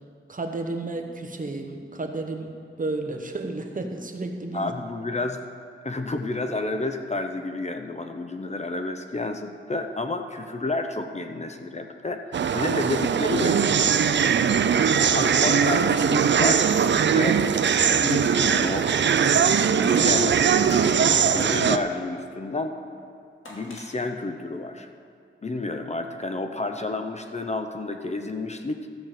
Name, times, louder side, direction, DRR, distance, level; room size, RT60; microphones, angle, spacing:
voice 1, 0.3-4.7, right 2 dB, 40° right, 4 dB, 1.1 m, -32 dB
voice 2, 4.5-5.4 5.8-14.3 15.1-16.7 17.0-19.5 19.7-20.5 21.3-22.8 23.5-24.9 25.4-28.8, left 2 dB, 35° left, 6 dB, 0.7 m, -30 dB
sound 1, 12.3-21.8, right 7 dB, 60° right, 0.4 m, -21 dB
Crushing, 19.8-21.8 23.0-23.1 23.4-23.9, left 2 dB, 80° left, 2.5 m, -43 dB
13.5 x 6.7 x 7.4 m, 2.3 s
wide cardioid pair, 110°, 21 cm